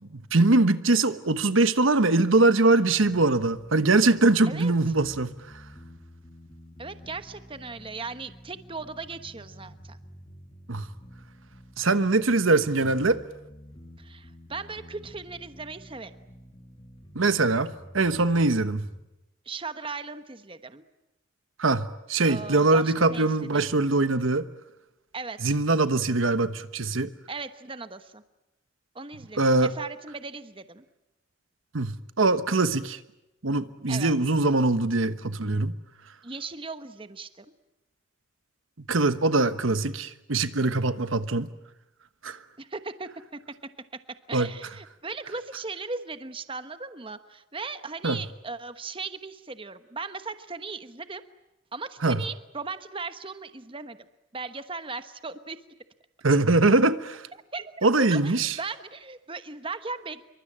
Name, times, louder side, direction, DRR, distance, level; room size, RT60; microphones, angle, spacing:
voice 1, 0.3-5.3 10.7-10.9 11.8-13.2 17.1-18.8 21.6-24.5 25.4-27.1 29.4-29.7 31.7-33.0 33.4-35.7 38.9-41.5 42.2-42.4 44.3-44.5 48.0-48.2 52.0-52.2 56.2-57.3 57.8-58.5, right 2 dB, 80° right, 12 dB, 1.2 m, -22 dB
sound 1, 3.0-19.0, equal, 25° left, 2.6 m, -49 dB
voice 2, 6.8-10.0 14.0-16.1 19.4-20.8 22.2-23.8 25.1-25.5 27.3-28.2 28.9-30.8 33.9-34.1 36.2-37.5 42.6-43.4 44.3-51.2 51.7-54.0 54.3-55.6 57.5-60.2, right 4 dB, 25° right, 10 dB, 1.1 m, -37 dB
27.0 x 23.5 x 8.7 m, 0.93 s
head